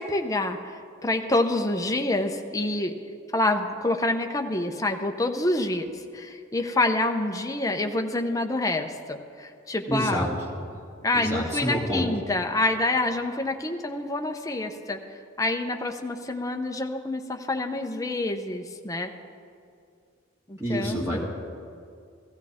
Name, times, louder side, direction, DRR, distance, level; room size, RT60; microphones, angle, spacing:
voice 1, 0.0-3.0 3.3-5.9 6.1-10.3 11.0-15.0 15.4-19.1 20.5-21.2, left 2 dB, 15° left, 4 dB, 0.7 m, -27 dB
voice 2, 9.9-10.3 11.1-12.1 20.6-21.2, equal, 15° right, -4 dB, 2.5 m, -28 dB
16.5 x 14.5 x 3.6 m, 2.3 s
head